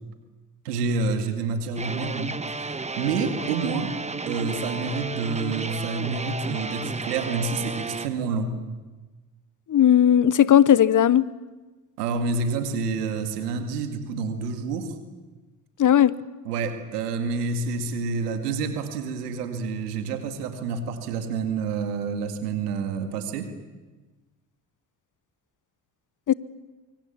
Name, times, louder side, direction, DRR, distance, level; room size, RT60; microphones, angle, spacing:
voice 1, 0.6-3.9 4.3-8.6 12.0-15.0 16.5-23.5, right 4 dB, 90° right, 2.3 m, -28 dB
sound 1, 1.8-8.1, right 3 dB, 15° right, 1.3 m, -32 dB
voice 2, 9.7-11.3 15.8-16.1 26.3-26.4, left 10 dB, 40° left, 1.1 m, -17 dB
25.0 x 25.0 x 7.4 m
hypercardioid pair, 55°, 46 cm